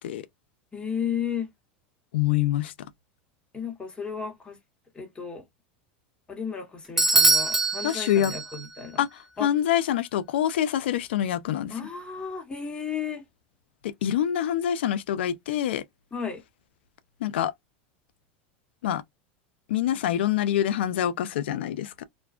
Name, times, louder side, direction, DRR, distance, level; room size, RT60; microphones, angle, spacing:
voice 1, 0.7-1.5 3.5-4.6 4.9-5.4 6.3-9.1 9.4-9.5 11.7-13.2 16.1-16.4, left 7 dB, 15° left, 1.0 m, -33 dB
voice 2, 2.1-2.7 7.8-8.3 9.0-9.1 9.4-11.7 13.8-15.8 17.2-17.5 18.8-19.0 19.7-22.0, left 11 dB, 85° left, 0.3 m, -25 dB
Bell / Doorbell, 7.0-8.8, right 2 dB, 5° right, 0.4 m, -23 dB
2.5 x 2.1 x 2.3 m
hypercardioid pair, 105°, 6 cm